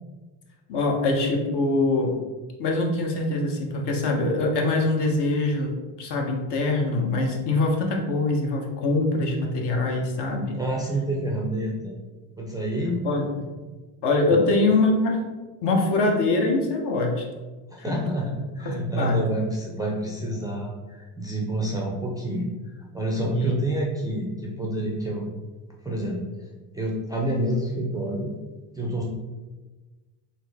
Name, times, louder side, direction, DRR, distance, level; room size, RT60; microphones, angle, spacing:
voice 1, 0.7-2.2 2.6-10.6 13.0-13.3 14.0-15.2 15.6-17.3 17.9-18.1 18.6-19.2 23.3-23.6, left 2 dB, 60° left, 1 dB, 1.0 m, -23 dB
voice 2, 10.5-11.9 12.4-13.0 14.3-14.5 17.7-22.5 22.9-25.3 25.8-26.2 26.7-28.3 28.8-29.0, right 1 dB, 10° right, -2 dB, 0.4 m, -28 dB
3.9 x 2.8 x 3.4 m, 1.3 s
cardioid pair, 115°, 47 cm